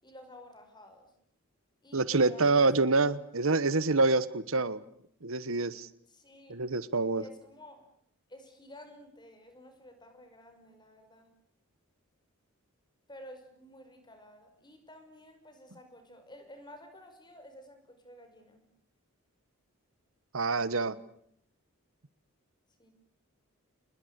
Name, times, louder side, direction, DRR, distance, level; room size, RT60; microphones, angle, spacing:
voice 1, 0.0-1.1 1.8-2.7 6.1-6.6 7.2-7.9 8.3-11.3 13.1-18.6 22.8-22.9, left 1 dB, 20° left, 7 dB, 5.7 m, -52 dB
voice 2, 1.9-4.8 5.2-5.9 6.5-7.2 20.3-20.9, right 3 dB, 65° right, 16 dB, 1.2 m, -26 dB
28.5 x 21.0 x 8.1 m, 0.68 s
head